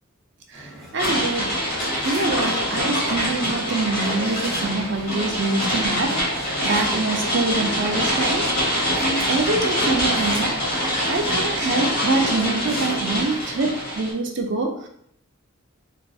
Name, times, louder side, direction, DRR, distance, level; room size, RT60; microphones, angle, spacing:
sound 1, 0.5-13.8, equal, ahead, 0.7 m, -40 dB
voice 1, 0.5-1.6 2.0-10.6 11.1-14.9, right 3 dB, 55° right, 3 dB, 0.5 m, -25 dB
sound 2, 1.0-14.1, equal, 45° left, 1.3 m, -24 dB
3.5 x 2.4 x 2.4 m, 0.69 s
head